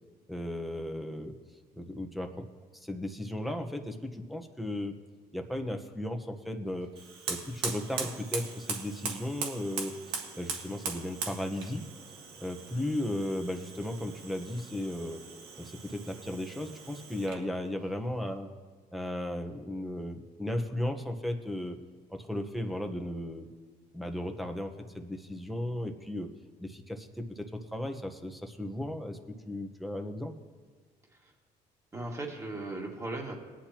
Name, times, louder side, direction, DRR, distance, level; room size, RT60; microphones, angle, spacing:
voice 1, 0.3-1.3 1.8-2.5 2.7-4.9 5.3-6.9 7.3-11.8 12.4-15.2 15.6-18.5 18.9-21.8 22.1-23.5 23.9-26.3 26.6-29.2 29.4-30.3, left 1 dB, ahead, 3 dB, 1.1 m, -35 dB
Fire, 6.9-17.5, right 5 dB, 85° right, 1.8 m, -40 dB
voice 2, 31.9-33.4, right 2 dB, 20° right, 0 dB, 2.2 m, -37 dB
19.5 x 10.0 x 3.0 m, 1.5 s
cardioid pair, 110°, 17 cm